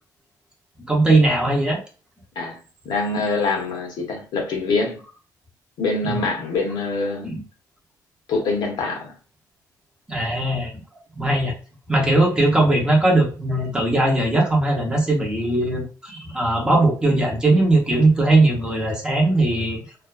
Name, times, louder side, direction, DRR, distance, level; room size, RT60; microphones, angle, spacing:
voice 1, 0.9-1.8 6.0-6.2 7.2-7.4 10.1-10.7 11.1-11.5 11.9-19.8, right 2 dB, 10° right, 0.8 m, -19 dB
voice 2, 2.9-5.0 5.8-7.3 8.3-9.1, left 3 dB, 70° left, 0.7 m, -24 dB
2.5 x 2.3 x 2.4 m
cardioid pair, 130°, 7 cm